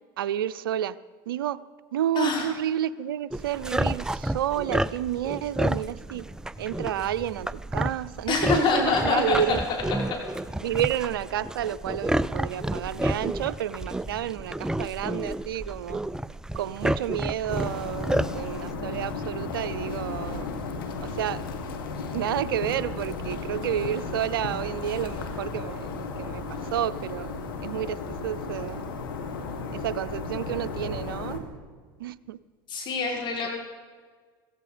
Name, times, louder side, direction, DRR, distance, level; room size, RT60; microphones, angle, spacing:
voice 1, 0.2-1.0 1.3-1.6 1.9-6.2 6.6-9.6 10.6-16.0 16.5-20.5 21.0-21.4 22.1-26.4 26.7-27.3 27.6-28.8 29.7-31.4 32.0-32.4 33.4-33.5, right 11 dB, 85° right, 17 dB, 0.5 m, -30 dB
voice 2, 2.2-2.5 8.3-9.6 9.9-10.0 32.7-33.5, left 5 dB, 45° left, -1 dB, 5.4 m, -25 dB
sound 1, 3.3-18.7, right 1 dB, 5° right, 0.4 m, -30 dB
sound 2, 17.5-31.4, left 4 dB, 85° left, 2.0 m, -34 dB
16.5 x 15.0 x 5.0 m, 1.5 s
hypercardioid pair, 85°, 11 cm